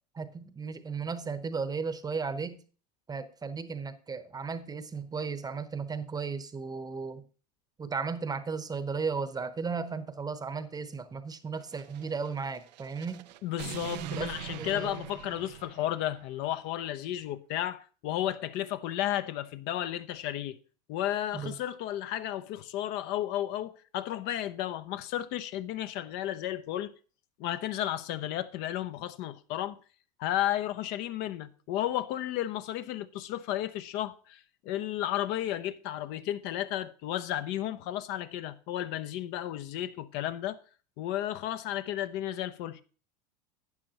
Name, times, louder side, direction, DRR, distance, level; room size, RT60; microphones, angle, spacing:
voice 1, 0.1-2.6 3.1-7.2 7.8-13.3 14.0-15.0 21.3-21.5, right 5 dB, 20° right, 0.8 m, -35 dB
sound 1, 11.6-16.4, right 14 dB, 80° right, 0.5 m, -43 dB
voice 2, 13.4-20.6 20.9-26.9 27.4-29.8 30.2-40.6 41.0-42.8, left 12 dB, 55° left, 0.6 m, -33 dB
12.0 x 8.6 x 2.9 m
hypercardioid pair, 95°, 21 cm